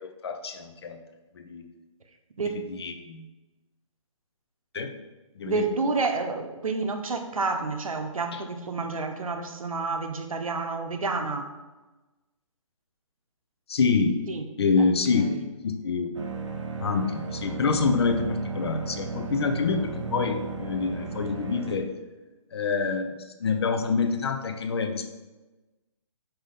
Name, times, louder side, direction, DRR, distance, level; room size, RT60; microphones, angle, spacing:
voice 1, 0.0-1.0 1.4-1.7 2.4-3.2 4.7-4.9 5.4-5.7 13.7-14.2 14.6-15.2 15.6-16.1 16.8-21.9 22.5-25.1, left 4 dB, 50° left, 7 dB, 0.6 m, -26 dB
voice 2, 5.5-11.5 14.3-14.4 14.8-14.9 15.2-15.5, right 3 dB, 85° right, 5 dB, 0.9 m, -29 dB
sound 1, 16.1-21.8, right 4 dB, 60° right, 0.9 m, -35 dB
5.7 x 5.1 x 3.7 m, 1.2 s
hypercardioid pair, 160°, 17 cm